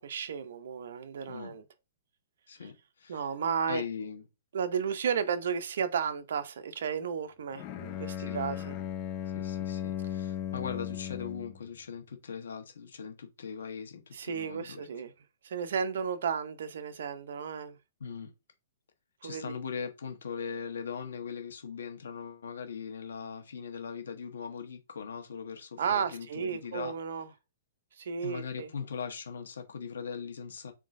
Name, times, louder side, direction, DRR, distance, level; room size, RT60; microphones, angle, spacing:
voice 1, 0.0-1.6 3.1-3.8 4.5-8.8 14.1-15.1 15.4-17.8 19.2-19.5 25.8-27.3 28.0-28.7, right 7 dB, 65° right, 0.6 m, -33 dB
voice 2, 2.5-3.3 3.7-4.2 8.3-8.4 9.3-14.8 18.0-18.3 19.2-26.9 28.2-30.7, left 6 dB, 85° left, 1.1 m, -40 dB
Bowed string instrument, 7.5-11.6, left 10 dB, 30° left, 0.5 m, -36 dB
4.0 x 3.5 x 2.6 m
hypercardioid pair, 155°, 0 cm